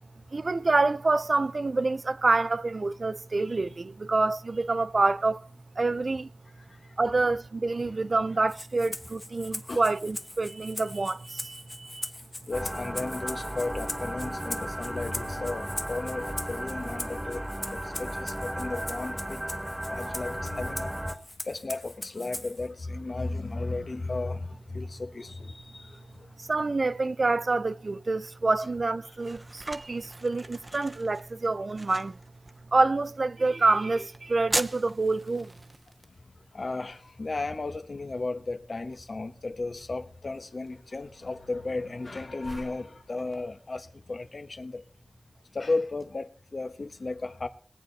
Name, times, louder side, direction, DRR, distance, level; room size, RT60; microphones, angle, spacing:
voice 1, 0.3-5.5 5.8-6.3 7.0-12.1 26.4-32.2 32.7-35.5, right 3 dB, 65° right, 0.5 m, -27 dB
Rattle (instrument), 8.5-22.7, left 1 dB, 30° left, 1.1 m, -41 dB
voice 2, 12.5-17.5 17.7-19.4 19.9-20.9 21.4-26.0 30.8-30.9 36.5-44.8 45.5-47.5, left 3 dB, 65° left, 1.3 m, -34 dB
sound 1, 12.5-21.2, equal, 15° right, 1.5 m, -35 dB
sound 2, 28.5-46.1, right 2 dB, 35° right, 0.8 m, -43 dB
20.0 x 8.9 x 4.1 m
wide cardioid pair, 55°, 0 cm